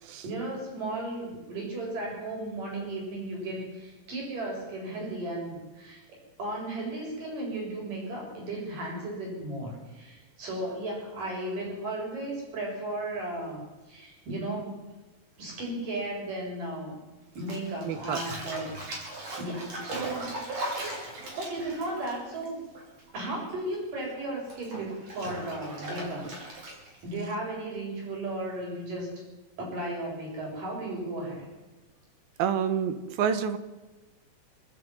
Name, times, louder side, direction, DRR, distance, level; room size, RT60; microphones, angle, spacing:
voice 1, 0.2-6.0 6.4-13.6 13.9-14.8 15.4-17.0 17.3-18.7 19.4-22.6 23.1-26.3 27.0-29.1 29.6-31.5, right 1 dB, 60° right, -1 dB, 8.8 m, -35 dB
Bathtub (filling or washing), 17.3-23.2 23.5-27.0, right 1 dB, 45° right, 6.1 m, -38 dB
voice 2, 17.9-18.2 32.4-33.6, right 8 dB, 80° right, 11 dB, 3.2 m, -28 dB
28.5 x 10.5 x 9.7 m, 1.1 s
omnidirectional pair, 4.2 m